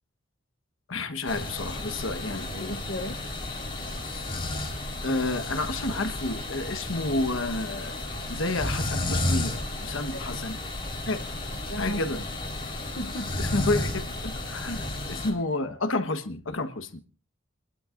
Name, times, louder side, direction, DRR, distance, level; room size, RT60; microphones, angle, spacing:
voice 1, 0.9-2.7 5.0-8.0 8.3-10.6 11.1-11.2 11.8-12.2 13.4-17.0, left 2 dB, 75° left, 1.3 m, -30 dB
sound 1, 1.3-15.3, left 1 dB, 25° left, 4.2 m, -32 dB
voice 2, 2.6-3.2 10.1-10.2 11.7-12.0 13.0-13.5, equal, 60° left, 0.8 m, -35 dB
29.0 x 12.0 x 2.6 m
head